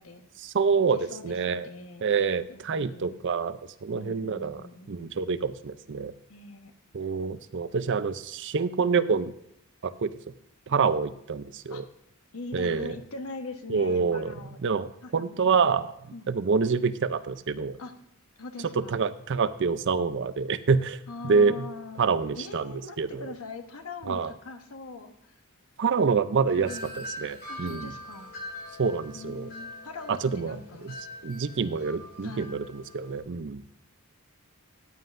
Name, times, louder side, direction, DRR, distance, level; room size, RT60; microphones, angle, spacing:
voice 1, 0.4-1.7 2.0-6.1 6.9-9.3 9.8-10.1 10.7-11.9 12.5-12.9 13.7-15.9 16.3-17.8 18.8-21.0 21.2-21.7 22.0-23.3 24.1-24.3 25.8-27.9 28.8-29.5 30.1-30.6 30.8-30.9 31.2-33.6, right 5 dB, 55° right, 13 dB, 0.5 m, -27 dB
voice 2, 0.9-2.0 2.5-3.2 3.9-4.9 6.3-6.7 11.7-11.8 12.3-14.6 15.0-15.7 16.1-16.3 17.8-17.9 18.4-19.0 21.1-22.0 22.4-25.4 26.6-27.1 27.5-28.3 29.1-30.9 32.2-32.5, left 3 dB, 70° left, 6 dB, 1.2 m, -42 dB
Wind chime, 26.5-33.2, left 1 dB, 45° left, 2.6 m, -43 dB
14.5 x 9.6 x 2.6 m, 0.77 s
head